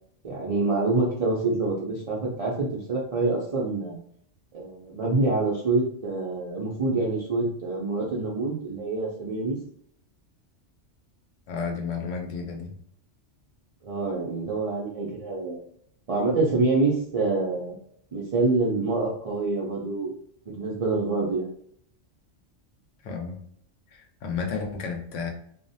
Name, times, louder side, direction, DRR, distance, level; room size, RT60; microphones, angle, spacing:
voice 1, 0.2-4.0 4.5-9.6 13.8-15.7 16.1-17.7 18.1-20.1 20.5-21.5, right 3 dB, 60° right, -5 dB, 0.3 m, -26 dB
voice 2, 11.5-12.8 23.0-23.4 23.9-25.3, left 5 dB, 80° left, 3 dB, 0.9 m, -32 dB
2.5 x 2.1 x 2.6 m, 0.67 s
omnidirectional pair, 1.3 m